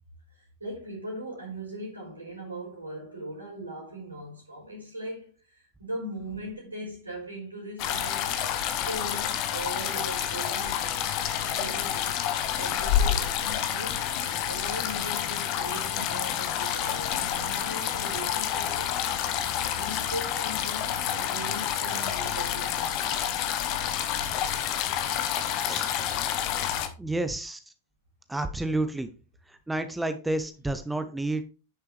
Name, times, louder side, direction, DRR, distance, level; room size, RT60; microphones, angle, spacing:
voice 1, 0.3-8.4 8.8-11.0 11.4-12.2 12.5-18.9 19.4-23.0, right 1 dB, 80° right, 5.0 m, -39 dB
sound 1, 7.8-26.9, left 10 dB, 40° left, 1.2 m, -29 dB
voice 2, 27.0-27.6 28.3-29.1 29.7-31.4, right 2 dB, 5° right, 0.8 m, -30 dB
10.0 x 6.9 x 3.3 m
figure-of-eight pair, 90°, 0 cm